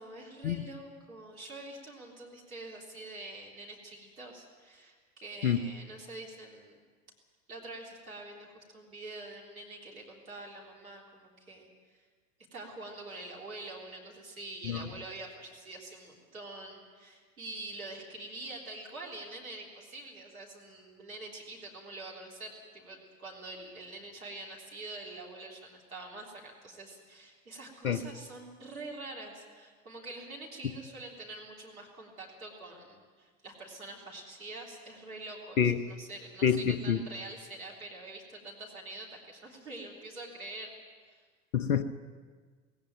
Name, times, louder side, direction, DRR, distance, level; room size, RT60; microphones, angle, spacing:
voice 1, 0.0-6.8 7.5-12.0 12.5-40.7 41.1-41.3, right 2 dB, 80° right, -1 dB, 3.6 m, -45 dB
voice 2, 36.4-37.0 41.5-41.8, left 8 dB, 75° left, 13 dB, 0.9 m, -27 dB
19.0 x 16.5 x 9.2 m, 1.5 s
figure-of-eight pair, 70°, 42 cm